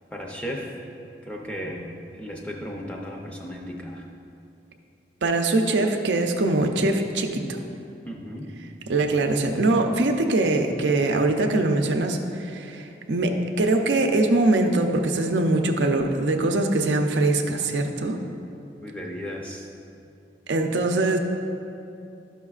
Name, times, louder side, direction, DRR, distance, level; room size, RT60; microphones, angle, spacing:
voice 1, 0.1-0.7 1.2-4.1 8.1-8.6 18.8-19.7, equal, 5° left, -1 dB, 0.5 m, -35 dB
voice 2, 5.2-7.6 8.9-18.2 20.5-21.2, right 2 dB, 80° right, 4 dB, 0.6 m, -22 dB
11.5 x 5.8 x 2.4 m, 2.7 s
head